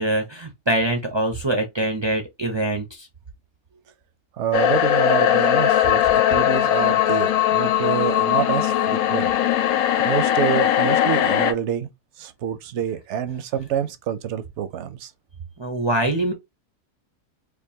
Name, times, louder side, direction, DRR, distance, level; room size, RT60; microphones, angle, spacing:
voice 1, 0.0-3.1 15.6-16.3, right 1 dB, 45° right, 0.3 m, -24 dB
voice 2, 4.4-9.3 10.0-11.9 12.2-15.1, right 9 dB, 65° right, 0.8 m, -27 dB
sound 1, 4.5-11.5, left 11 dB, 70° left, 1.1 m, -19 dB
4.4 x 2.5 x 2.7 m
omnidirectional pair, 1.6 m